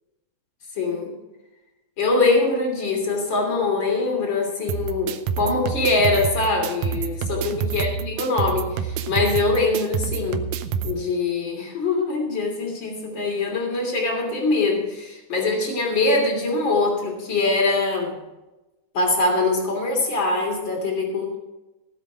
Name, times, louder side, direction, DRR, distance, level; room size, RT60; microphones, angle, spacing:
voice 1, 0.7-1.1 2.0-10.4 10.8-18.1 18.9-21.4, left 3 dB, 35° left, 1 dB, 3.4 m, -23 dB
sound 1, 4.7-10.9, right 7 dB, 75° right, 2.1 m, -27 dB
16.5 x 8.1 x 5.0 m, 1.0 s
omnidirectional pair, 4.0 m